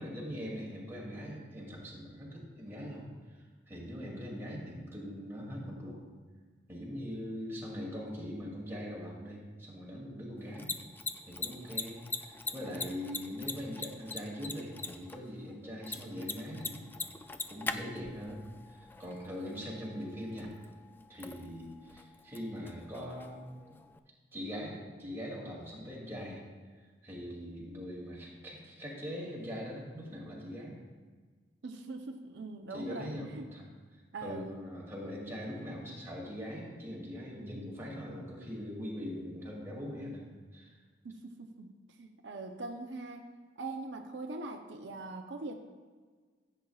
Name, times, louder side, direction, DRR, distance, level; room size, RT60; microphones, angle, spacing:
voice 1, 0.0-6.0 6.7-10.7 11.3-16.8 17.5-20.6 21.1-23.4 23.7-23.8 24.3-26.4 27.0-30.7 32.7-33.7 34.2-40.2 40.5-40.7, equal, 15° right, -5 dB, 2.5 m, -42 dB
Mechanisms, 10.4-24.0, left 3 dB, 10° left, 0.3 m, -43 dB
voice 2, 31.6-33.5 34.1-34.6 41.0-41.7 42.0-43.3 43.6-45.6, right 3 dB, 85° right, 3 dB, 0.7 m, -42 dB
15.5 x 8.2 x 2.4 m, 1.5 s
head